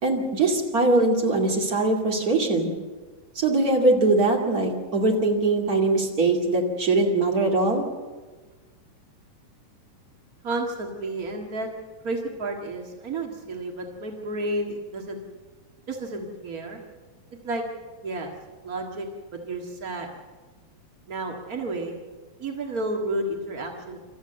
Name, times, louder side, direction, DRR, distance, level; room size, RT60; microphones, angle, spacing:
voice 1, 0.0-2.7 3.4-7.8, right 2 dB, 30° right, 1 dB, 2.1 m, -22 dB
voice 2, 10.4-11.7 12.0-15.2 15.9-16.8 17.4-17.6 18.0-18.3 18.6-20.1 21.1-22.0 22.4-24.0, right 2 dB, 55° right, 1 dB, 0.9 m, -31 dB
27.0 x 14.0 x 7.9 m, 1.3 s
omnidirectional pair, 4.7 m